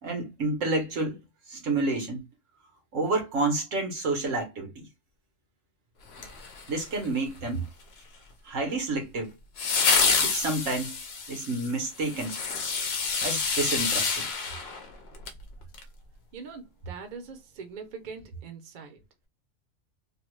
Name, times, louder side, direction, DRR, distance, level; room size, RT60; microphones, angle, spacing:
voice 1, 0.0-1.2 1.5-2.2 2.9-4.9 6.7-7.7 8.5-9.3 10.2-11.0 11.3-12.4 13.2-14.3, right 2 dB, 90° right, 1.5 m, -29 dB
sound 1, 6.1-7.1 9.6-15.4 15.7-15.8, left 5 dB, 60° left, 0.9 m, -28 dB
voice 2, 16.3-19.0, right 5 dB, 45° right, 0.7 m, -42 dB
3.2 x 2.2 x 3.1 m
omnidirectional pair, 1.3 m